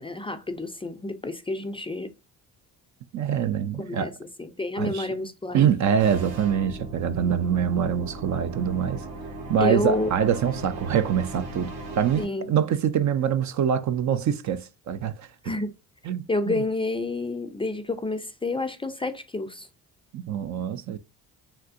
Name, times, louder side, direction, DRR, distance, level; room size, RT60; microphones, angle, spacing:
voice 1, 0.0-2.1 3.8-4.1 4.4-5.7 9.6-10.1 12.2-12.5 15.4-15.7 16.3-19.7, left 2 dB, 15° left, 0.4 m, -29 dB
voice 2, 3.1-4.1 4.8-5.2 5.5-9.1 9.5-15.3 16.1-16.6 20.1-21.0, right 8 dB, 45° right, 0.4 m, -25 dB
sound 1, 6.0-12.2, right 2 dB, 70° right, 1.3 m, -38 dB
3.4 x 2.6 x 2.5 m
supercardioid pair, 75°, 40 cm